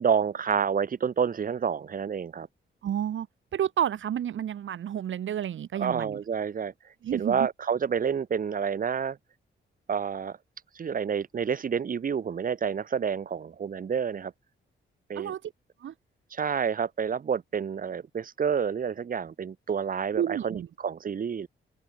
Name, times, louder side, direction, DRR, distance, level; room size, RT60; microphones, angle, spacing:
voice 1, 0.0-2.5 5.8-6.7 7.1-9.2 9.9-10.4 10.7-14.3 15.1-15.3 16.3-21.5, right 7 dB, 45° right, 3.4 m, -29 dB
voice 2, 2.8-3.3 3.5-6.2 7.0-7.5 15.1-15.5 15.8-15.9 20.1-20.7, right 10 dB, 70° right, 3.0 m, -30 dB
wide cardioid pair, 170°, 20 cm